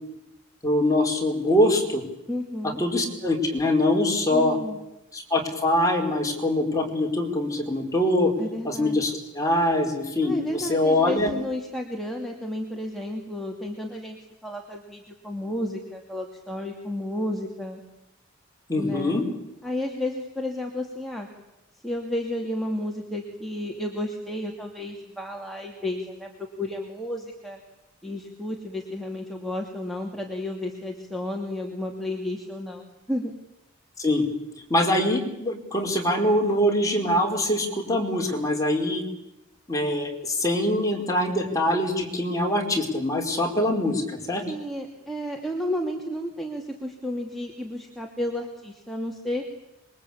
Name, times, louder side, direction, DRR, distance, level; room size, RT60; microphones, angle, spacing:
voice 1, 0.6-2.0 2.6-4.6 5.1-8.3 8.6-11.3 18.7-19.2 34.0-34.3 34.7-39.0 39.7-44.4, left 1 dB, 15° left, 1 dB, 4.9 m, -23 dB
voice 2, 2.3-2.8 4.3-4.8 8.4-9.0 10.2-17.8 18.8-19.2 19.6-21.3 21.8-26.3 26.6-27.6 28.0-33.3 44.5-49.4, left 1 dB, ahead, 0 dB, 2.6 m, -32 dB
26.5 x 23.0 x 8.7 m, 0.90 s
head